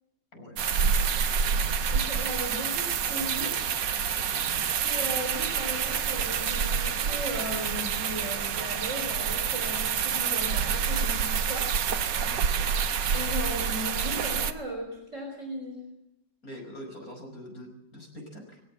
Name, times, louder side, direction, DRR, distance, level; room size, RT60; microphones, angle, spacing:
voice 1, 0.3-0.9 4.3-4.6 12.2-12.5 16.4-18.6, left 1 dB, 55° left, 3 dB, 6.0 m, -44 dB
sound 1, 0.6-14.5, right 7 dB, 90° right, 1.9 m, -28 dB
voice 2, 1.9-3.8 4.8-11.7 13.1-15.8, equal, 45° right, 2 dB, 4.4 m, -37 dB
20.0 x 17.5 x 8.8 m, 0.83 s
omnidirectional pair, 1.9 m